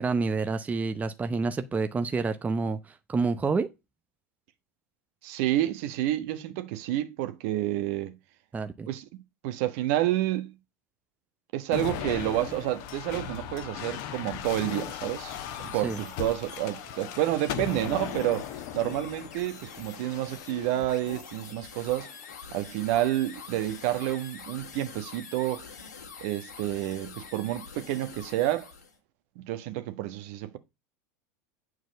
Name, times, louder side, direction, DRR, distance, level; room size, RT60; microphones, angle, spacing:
voice 1, 0.0-2.8 3.1-3.7 8.5-8.9 15.8-16.0, right 4 dB, 15° right, 0.7 m, -28 dB
voice 2, 5.2-8.1 8.9-10.5 11.5-15.3 15.6-18.5 18.7-22.1 22.5-25.6 26.2-28.7 29.4-30.6, right 14 dB, 55° right, 1.2 m, -29 dB
sound 1, 11.7-21.1 21.8-22.3 23.4-24.1, left 9 dB, 55° left, 1.2 m, -38 dB
sound 2, 14.4-29.0, left 6 dB, 75° left, 2.0 m, -46 dB
9.2 x 4.7 x 5.2 m
figure-of-eight pair, 80°, 9 cm